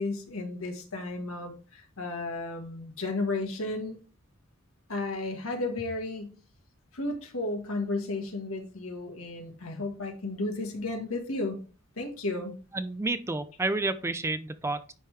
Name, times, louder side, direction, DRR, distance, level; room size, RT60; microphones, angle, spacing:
voice 1, 0.0-4.0 4.9-6.3 6.9-11.6 12.0-12.5, left 2 dB, 80° left, 3 dB, 1.5 m, -33 dB
voice 2, 12.7-14.9, right 2 dB, 15° right, 11 dB, 0.4 m, -30 dB
9.9 x 3.5 x 3.2 m, 0.37 s
head